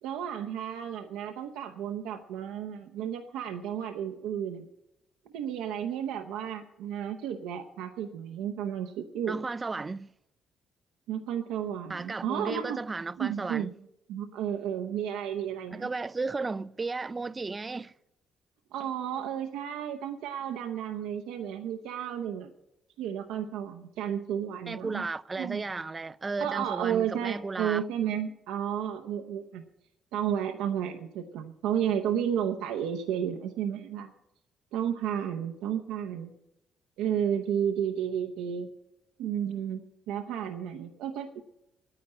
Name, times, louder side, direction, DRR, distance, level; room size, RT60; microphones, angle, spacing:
voice 1, 0.0-4.7 5.3-9.5 11.1-12.8 13.2-13.7 14.1-15.9 18.7-22.5 23.0-25.0 25.4-25.6 26.4-29.6 30.1-34.1 34.7-36.3 37.0-38.7 39.2-39.8 40.1-41.4, right 9 dB, 85° right, 0.8 m, -32 dB
voice 2, 9.3-10.1 11.9-13.8 15.7-17.9 24.7-27.9, right 3 dB, 30° right, 0.4 m, -34 dB
9.8 x 9.5 x 9.9 m
supercardioid pair, 65°, 0 cm